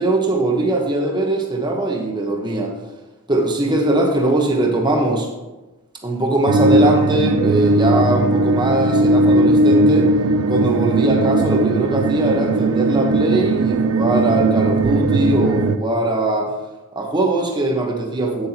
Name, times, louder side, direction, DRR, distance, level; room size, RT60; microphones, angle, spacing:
voice 1, 0.0-2.7 3.3-5.3 6.0-10.1 10.5-16.5 16.9-18.5, right 1 dB, 20° right, 1 dB, 1.1 m, -20 dB
sound 1, 6.5-15.8, right 2 dB, 65° right, 0.4 m, -17 dB
8.6 x 7.9 x 2.9 m, 1.1 s
head